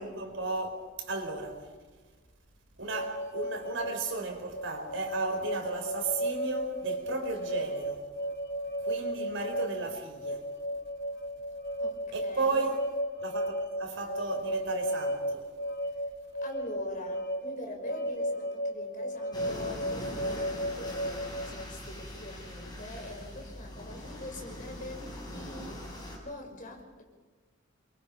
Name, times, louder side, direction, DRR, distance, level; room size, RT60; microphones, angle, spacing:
voice 1, 0.0-1.7 2.8-8.0 8.8-10.5 12.1-12.8 13.2-15.5, right 3 dB, 65° right, 4.9 m, -34 dB
sound 1, 2.9-21.6, equal, 60° left, 4.3 m, -35 dB
voice 2, 11.8-12.7 16.4-25.9 26.2-27.0, left 1 dB, 40° left, 5.5 m, -43 dB
sound 2, 19.3-26.2, left 1 dB, 20° left, 7.8 m, -42 dB
28.5 x 23.5 x 5.5 m
head